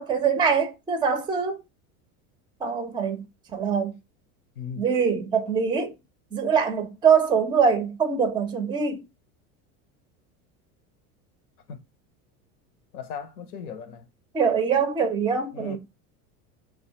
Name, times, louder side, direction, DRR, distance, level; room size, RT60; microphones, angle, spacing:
voice 1, 0.0-1.6 2.6-3.2 3.5-3.9 4.8-5.9 6.3-9.0 14.3-15.8, right 6 dB, 10° right, 0.4 m, -23 dB
voice 2, 4.6-4.9 11.7-11.8 12.9-14.1 15.5-15.8, left 6 dB, 90° left, 0.7 m, -37 dB
2.2 x 2.2 x 2.8 m
hypercardioid pair, 100°, 44 cm